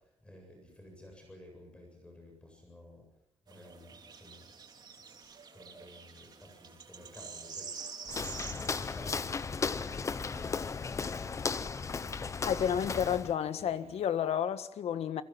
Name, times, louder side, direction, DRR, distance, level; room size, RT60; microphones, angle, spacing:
voice 1, 0.0-3.1 3.5-4.8 5.5-7.7 8.1-11.4, left 1 dB, 10° left, 8.0 m, -53 dB
sound 1, 3.5-9.3, right 5 dB, 40° right, 3.1 m, -47 dB
Walk footsteps, 8.1-13.3, left 5 dB, 30° left, 0.9 m, -35 dB
sound 2, 9.1-14.1, right 6 dB, 75° right, 7.6 m, -59 dB
voice 2, 12.5-15.2, left 9 dB, 75° left, 1.6 m, -31 dB
27.5 x 22.5 x 6.0 m
wide cardioid pair, 170°, 11 cm